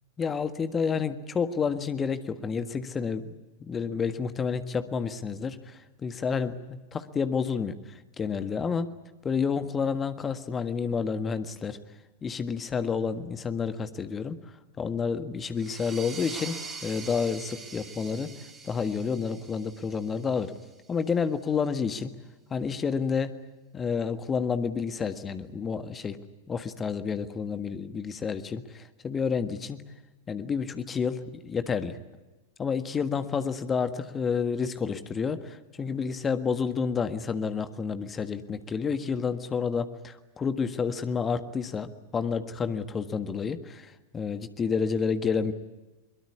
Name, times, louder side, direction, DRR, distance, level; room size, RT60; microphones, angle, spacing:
voice 1, 0.2-3.3 3.6-8.9 9.2-11.8 12.2-14.4 14.8-18.3 18.6-20.5 20.9-22.1 22.5-23.3 23.7-26.2 26.5-29.8 30.3-32.0 32.6-45.5, left 6 dB, 20° left, 11 dB, 1.6 m, -30 dB
sound 1, 15.5-20.9, right 4 dB, 25° right, 4.3 m, -43 dB
22.5 x 22.0 x 9.6 m, 1.1 s
figure-of-eight pair, 90°, 0 cm